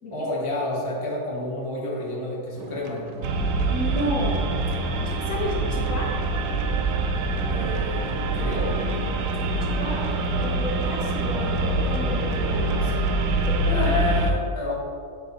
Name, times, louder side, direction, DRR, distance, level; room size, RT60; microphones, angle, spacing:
voice 1, 0.1-3.0 7.5-8.8 13.7-14.9, left 1 dB, 25° left, -4 dB, 0.9 m, -29 dB
sound 1, 2.5-14.0, right 3 dB, 65° right, 0.9 m, -41 dB
sound 2, 3.2-14.3, right 2 dB, 85° right, 1.2 m, -25 dB
voice 2, 3.7-4.5 5.0-6.1 9.6-10.1 10.4-13.0 13.4-13.9, equal, 55° left, -5 dB, 1.3 m, -31 dB
8.9 x 4.5 x 4.2 m, 2.3 s
omnidirectional pair, 1.7 m